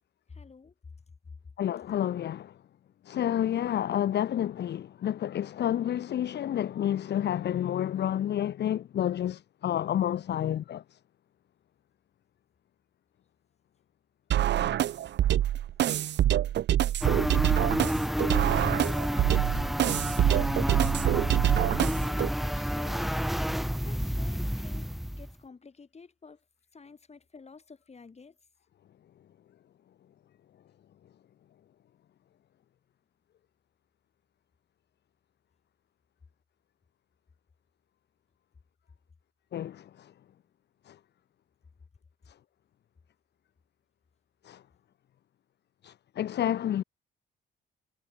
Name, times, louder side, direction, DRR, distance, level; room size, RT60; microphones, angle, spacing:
voice 1, 0.3-0.7 18.3-19.9 20.3-21.2 22.0-23.2 23.8-26.4 26.7-28.4, left 4 dB, 35° left, 7.7 m, -51 dB
voice 2, 1.6-2.6 3.0-11.0 39.5-40.1 40.9-41.0 42.3-42.4 44.4-44.6 45.8-46.8, left 11 dB, 60° left, 0.9 m, -30 dB
sound 1, 14.3-22.3, right 12 dB, 60° right, 0.7 m, -25 dB
sound 2, 17.0-25.3, equal, ahead, 0.8 m, -30 dB
cardioid pair, 90°, 20 cm